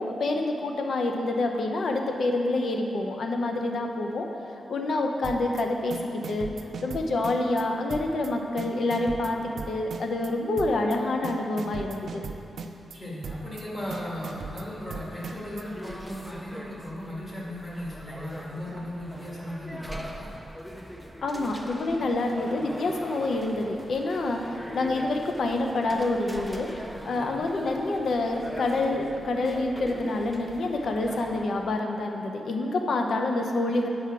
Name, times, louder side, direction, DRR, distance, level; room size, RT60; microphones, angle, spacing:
voice 1, 0.0-4.3 4.7-6.5 6.8-9.4 9.7-12.2 21.2-24.4 24.7-33.9, left 2 dB, 55° left, 3 dB, 0.6 m, -27 dB
sound 1, 5.2-5.6 5.9-7.6 7.9-8.3 8.6-10.3 10.6-11.0 11.2-13.0 13.2-13.6 13.9-15.6, right 4 dB, 60° right, 0.4 m, -38 dB
voice 2, 12.9-20.3 27.1-27.4, left 1 dB, 25° left, -6 dB, 1.7 m, -37 dB
sound 2, 13.8-31.5, equal, ahead, 0.4 m, -42 dB
8.5 x 4.7 x 5.8 m, 2.9 s
wide cardioid pair, 160°, 0 cm